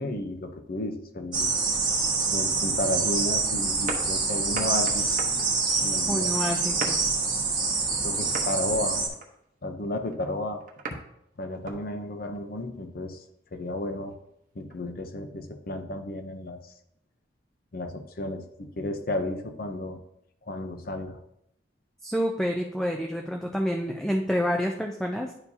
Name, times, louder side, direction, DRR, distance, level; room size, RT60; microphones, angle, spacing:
voice 1, 0.0-1.5 2.3-5.1 5.8-6.8 8.0-9.0 9.6-10.6 10.9-11.0 11.4-13.2 13.5-14.2 14.5-16.7 17.7-20.0 20.4-21.2, left 1 dB, 55° left, 6 dB, 0.7 m, -33 dB
sound 1, 1.3-9.1, right 4 dB, 25° right, 1.4 m, -26 dB
sound 2, 3.7-5.7 6.3-7.1 7.8-8.0 8.3-8.6 9.0-9.3 9.8-11.0 11.4-11.8 12.3-12.4 14.7-14.8, right 3 dB, 50° right, 0.9 m, -37 dB
voice 2, 6.1-7.0 22.0-25.3, equal, 5° left, 2 dB, 0.4 m, -28 dB
10.5 x 4.7 x 2.7 m, 0.77 s
head